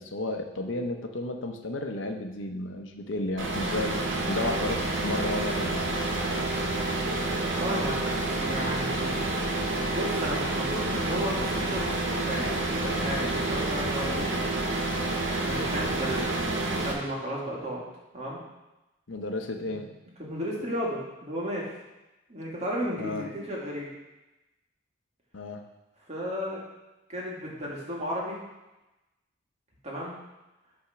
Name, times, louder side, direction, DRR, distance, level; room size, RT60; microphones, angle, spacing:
voice 1, 0.0-5.9 19.1-19.9 23.0-23.3 25.3-25.6, left 2 dB, 75° left, 5 dB, 0.8 m, -33 dB
sound 1, 3.4-16.9, right 2 dB, 85° right, 1.8 m, -29 dB
voice 2, 7.6-8.2 8.4-9.2 9.9-14.4 15.4-16.3 16.8-17.8 18.1-18.4 19.6-19.8 20.2-21.7 22.3-23.9 26.1-26.6 27.1-28.4 29.8-30.1, equal, 35° right, -4 dB, 2.0 m, -33 dB
9.8 x 3.6 x 5.8 m, 1.0 s
head